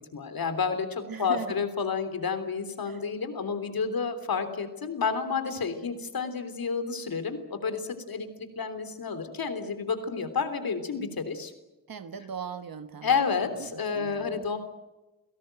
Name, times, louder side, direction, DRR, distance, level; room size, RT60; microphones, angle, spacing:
voice 1, 0.1-11.5 13.0-14.6, left 5 dB, 80° left, 9 dB, 3.4 m, -30 dB
voice 2, 1.1-1.6 2.9-3.0 11.9-14.5, right 7 dB, 75° right, 9 dB, 1.3 m, -40 dB
29.0 x 17.5 x 9.1 m, 1.0 s
cardioid pair, 50°, 35 cm